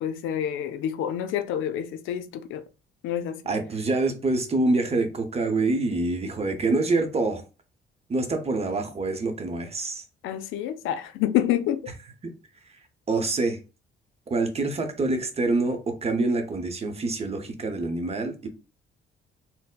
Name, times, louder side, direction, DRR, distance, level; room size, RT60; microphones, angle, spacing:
voice 1, 0.0-2.6 3.0-3.4 10.2-11.8, left 10 dB, 90° left, 0.4 m, -28 dB
voice 2, 3.5-7.4 8.1-10.0 12.2-12.3 13.1-13.6 14.3-18.5, right 2 dB, 30° right, 0.7 m, -26 dB
4.1 x 2.0 x 2.2 m
cardioid pair, 90°, 20 cm